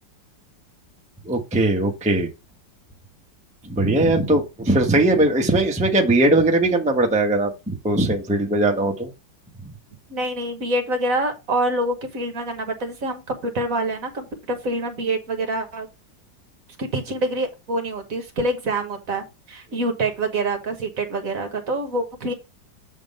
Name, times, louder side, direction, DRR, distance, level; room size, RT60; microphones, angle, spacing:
voice 1, 1.2-2.3 3.7-9.1, right 2 dB, 5° right, 0.8 m, -20 dB
voice 2, 10.1-15.9 16.8-22.3, right 2 dB, 50° right, 1.6 m, -26 dB
7.8 x 3.7 x 5.3 m
omnidirectional pair, 2.0 m